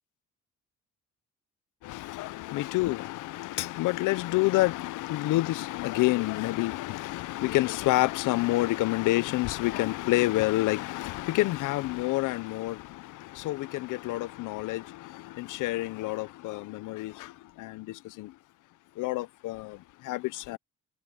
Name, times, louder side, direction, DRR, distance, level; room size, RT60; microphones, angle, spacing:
voice 1, 1.8-18.3 19.0-20.6, left 19 dB, 85° left, 0.6 m, -28 dB
cardioid pair, 90°, 30 cm